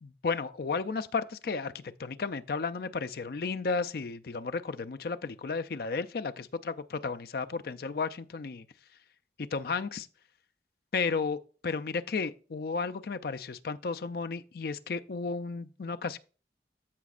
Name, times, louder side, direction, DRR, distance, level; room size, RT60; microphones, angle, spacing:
voice 1, 0.0-8.7 9.4-10.1 10.9-11.4 11.6-16.2, left 4 dB, 60° left, 0.4 m, -33 dB
14.0 x 5.1 x 2.4 m
head